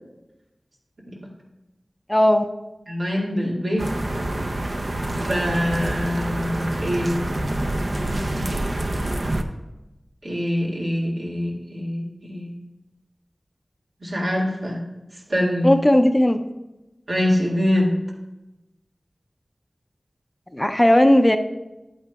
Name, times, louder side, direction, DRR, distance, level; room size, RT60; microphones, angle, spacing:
voice 1, 2.1-2.5 15.6-16.4 20.5-21.4, left 1 dB, 20° left, 7 dB, 0.5 m, -16 dB
voice 2, 2.9-3.9 5.1-7.3 10.2-12.5 14.0-14.8 15.3-15.7 17.1-17.9, equal, 80° right, -4 dB, 2.0 m, -24 dB
sound 1, 3.8-9.4, right 1 dB, 55° right, 0.6 m, -26 dB
10.5 x 8.7 x 2.3 m, 1.0 s
wide cardioid pair, 50°, 0 cm